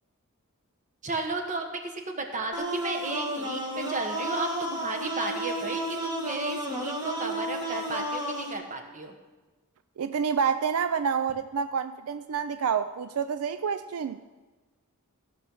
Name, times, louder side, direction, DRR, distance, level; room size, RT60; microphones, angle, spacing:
voice 1, 1.0-9.1, right 3 dB, 35° right, 4 dB, 1.3 m, -34 dB
sound 1, 2.5-8.5, right 1 dB, 20° right, 1.5 m, -32 dB
voice 2, 10.0-14.2, right 6 dB, 80° right, 11 dB, 0.4 m, -28 dB
15.5 x 6.4 x 5.6 m, 1.2 s
head